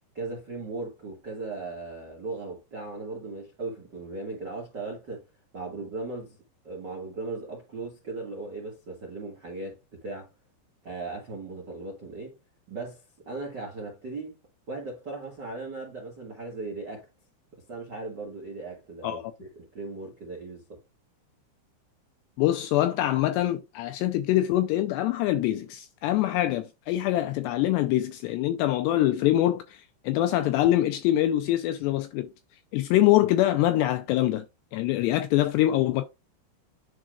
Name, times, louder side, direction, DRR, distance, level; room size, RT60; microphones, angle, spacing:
voice 1, 0.1-5.3 5.5-6.4 6.6-10.3 10.8-12.4 12.7-14.4 14.7-17.1 17.7-20.8, right 3 dB, 70° right, 1.0 m, -37 dB
voice 2, 22.4-32.3 32.7-34.5 34.7-36.0, left 14 dB, 85° left, 2.4 m, -24 dB
11.0 x 3.9 x 2.4 m
omnidirectional pair, 5.4 m